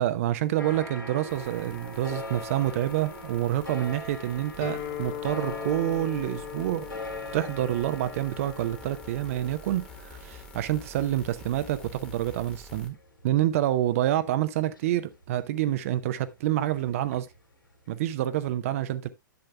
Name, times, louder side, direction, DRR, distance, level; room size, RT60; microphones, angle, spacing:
voice 1, 0.0-6.9 7.3-13.0 13.2-17.3 17.9-19.1, right 13 dB, 40° right, 0.6 m, -27 dB
sound 1, 0.6-15.7 16.0-17.5 17.7-17.8, left 2 dB, 80° left, 3.1 m, -42 dB
sound 2, 1.3-12.9, left 2 dB, 10° left, 1.5 m, -49 dB
Guitar, 4.6-12.4, left 10 dB, 40° left, 2.2 m, -41 dB
10.5 x 7.7 x 2.2 m
figure-of-eight pair, 110°, 11 cm